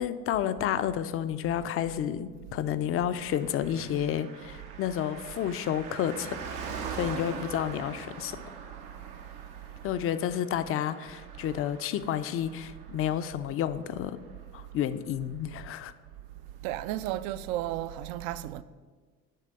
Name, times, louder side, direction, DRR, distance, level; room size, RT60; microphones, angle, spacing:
voice 1, 0.0-6.4 7.0-8.4 9.8-14.2 14.5-15.9, left 10 dB, 35° left, 0.4 m, -30 dB
Car passing by, 3.1-15.0 15.2-15.3, right 5 dB, 75° right, 0.9 m, -43 dB
voice 2, 16.6-18.6, right 13 dB, 60° right, 0.5 m, -33 dB
8.3 x 3.3 x 6.6 m
hypercardioid pair, 55°, 44 cm